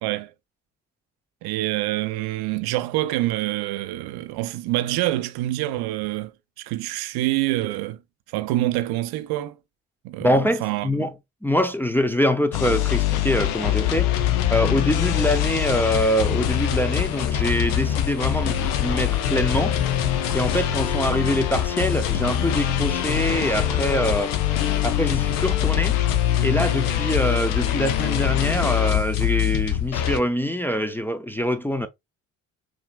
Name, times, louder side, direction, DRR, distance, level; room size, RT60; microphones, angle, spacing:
voice 1, 1.4-8.0 8.3-9.6 10.0-10.9, right 16 dB, 65° right, 0.6 m, -26 dB
voice 2, 10.2-11.1 11.4-14.1 14.5-19.8 20.3-24.3 24.8-26.0 26.4-31.9, equal, 5° left, 0.5 m, -24 dB
sound 1, 12.5-30.2, left 11 dB, 75° left, 0.6 m, -23 dB
Chatter / Car passing by / Traffic noise roadway noise, 18.3-26.3, left 5 dB, 45° left, 2.4 m, -38 dB
4.7 x 2.8 x 2.2 m
hypercardioid pair, 50°, 40 cm